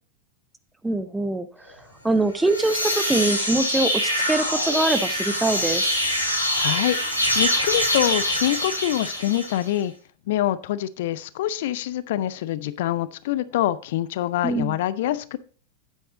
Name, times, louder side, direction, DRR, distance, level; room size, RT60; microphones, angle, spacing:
voice 1, 0.8-1.8 2.0-6.0 14.4-14.8, right 2 dB, 5° right, 12 dB, 0.7 m, -24 dB
sound 1, 2.3-9.7, equal, 85° left, 2.2 m, -24 dB
voice 2, 6.2-9.9 10.3-15.4, left 13 dB, 55° left, 17 dB, 0.4 m, -25 dB
8.9 x 7.8 x 3.7 m, 0.41 s
figure-of-eight pair, 90°, 0 cm